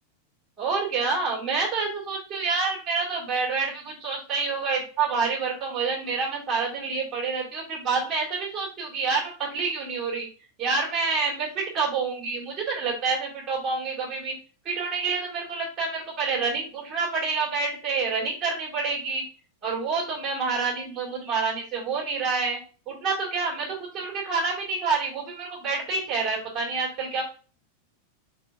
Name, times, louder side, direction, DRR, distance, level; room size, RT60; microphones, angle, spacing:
voice 1, 0.6-10.3 10.6-14.3 14.7-19.2 19.6-22.6 22.9-27.2, right 4 dB, 30° right, -4 dB, 2.1 m, -28 dB
4.3 x 3.7 x 2.5 m, 0.38 s
figure-of-eight pair, 90°, 0 cm